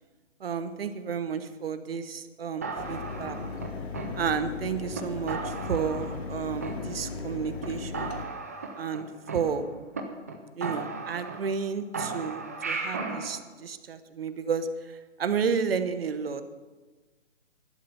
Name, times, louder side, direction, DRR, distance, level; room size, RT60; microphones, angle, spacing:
voice 1, 0.4-3.4 4.1-8.1 8.8-9.7 10.5-16.4, right 6 dB, 50° right, 11 dB, 1.1 m, -32 dB
sound 1, 2.6-4.6 4.9-5.0 5.3-6.3 6.6-7.3 7.6-7.7 7.9-10.0 10.3-10.4 10.6-11.7 11.9-13.3, right 4 dB, 15° right, 0.4 m, -36 dB
Mechanisms, 2.8-8.2, left 5 dB, 55° left, 1.5 m, -37 dB
13.0 x 11.5 x 5.5 m, 1.3 s
figure-of-eight pair, 135°, 37 cm